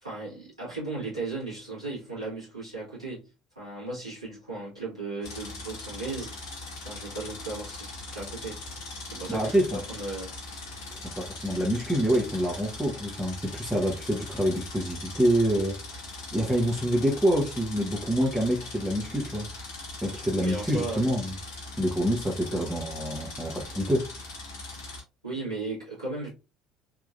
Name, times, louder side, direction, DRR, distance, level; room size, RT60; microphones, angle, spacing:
voice 1, 0.0-6.4 6.8-8.6 9.0-10.4 20.4-21.1 22.5-22.7 25.2-26.3, right 3 dB, 85° right, 1.4 m, -36 dB
sound 1, 5.2-25.0, left 2 dB, 70° left, 1.0 m, -40 dB
voice 2, 9.3-9.8 11.2-15.8 16.3-19.4 20.0-21.3 21.8-24.0, equal, 5° right, 1.0 m, -26 dB
3.5 x 2.9 x 2.5 m
figure-of-eight pair, 60°, 3 cm